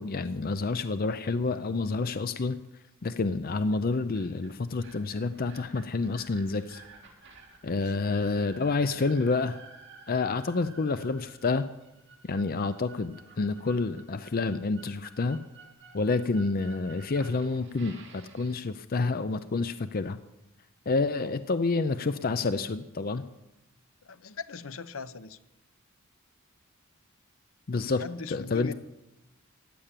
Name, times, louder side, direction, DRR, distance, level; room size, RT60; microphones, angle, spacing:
voice 1, 0.0-2.6 3.0-6.8 7.6-9.6 10.1-11.7 12.2-15.4 15.9-20.2 20.9-23.2 27.7-28.7, left 3 dB, 45° left, 11 dB, 0.5 m, -28 dB
sound 1, 3.5-18.6, right 4 dB, 55° right, 3.0 m, -52 dB
voice 2, 7.7-8.1 24.0-25.4 27.8-28.7, left 4 dB, 70° left, 14 dB, 0.8 m, -40 dB
15.5 x 10.0 x 7.5 m, 0.95 s
head